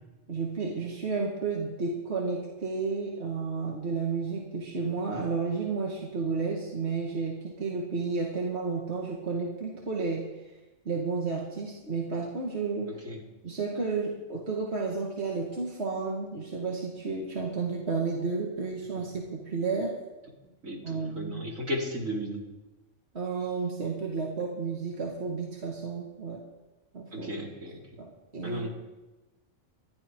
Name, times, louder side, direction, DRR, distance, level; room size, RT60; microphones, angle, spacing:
voice 1, 0.3-10.2 10.9-13.0 13.4-20.0 20.8-21.4 23.1-26.4 26.9-27.3 28.0-28.7, right 4 dB, 50° right, -1 dB, 2.3 m, -32 dB
voice 2, 20.6-22.4 27.1-27.8 28.4-28.7, equal, 70° right, -2 dB, 3.3 m, -35 dB
20.5 x 13.0 x 4.6 m, 1.1 s
omnidirectional pair, 1.5 m